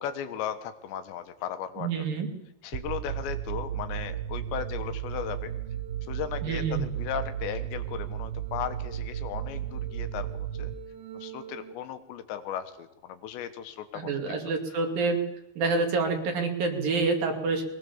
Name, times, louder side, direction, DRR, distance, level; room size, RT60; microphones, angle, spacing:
voice 1, 0.0-1.9 2.6-5.5 6.1-10.7 11.1-14.4, left 9 dB, 80° left, 10 dB, 3.5 m, -36 dB
voice 2, 1.8-2.3 6.4-6.9 13.9-15.2 15.6-17.6, right 4 dB, 55° right, 4 dB, 4.0 m, -27 dB
sound 1, 2.7-11.7, right 10 dB, 80° right, 3.3 m, -34 dB
22.0 x 19.0 x 7.2 m, 0.85 s
omnidirectional pair, 5.1 m